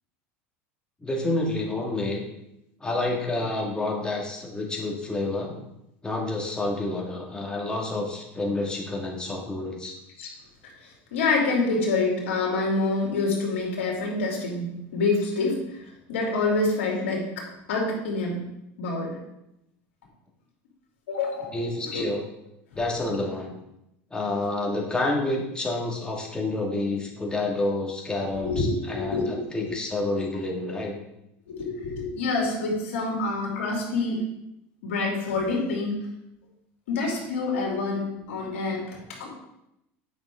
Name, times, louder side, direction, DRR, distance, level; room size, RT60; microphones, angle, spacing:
voice 1, 1.0-2.2 2.8-5.6 6.0-9.9 21.5-22.2 22.8-23.6 24.1-31.0, left 2 dB, 15° left, -1 dB, 2.2 m, -29 dB
voice 2, 10.8-18.4 18.8-19.1 21.1-22.0 28.3-29.7 31.5-34.2 34.8-36.0 36.9-39.3, left 3 dB, 85° left, -1 dB, 2.8 m, -27 dB
8.7 x 6.1 x 3.8 m, 0.85 s
supercardioid pair, 100°, 7 cm